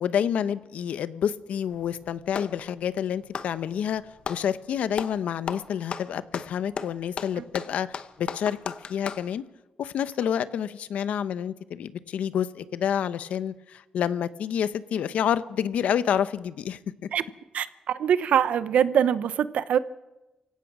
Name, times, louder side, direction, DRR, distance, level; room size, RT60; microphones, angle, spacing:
voice 1, 0.0-4.0 4.3-9.4 9.8-16.8, left 9 dB, 85° left, 14 dB, 0.9 m, -28 dB
Clapping, 1.7-2.6 3.2-4.5 4.9-5.2 5.5-9.3, left 6 dB, 50° left, 0.9 m, -35 dB
voice 2, 17.5-19.8, right 8 dB, 80° right, 14 dB, 0.9 m, -23 dB
29.0 x 17.0 x 6.2 m, 1.0 s
wide cardioid pair, 165°, 2 cm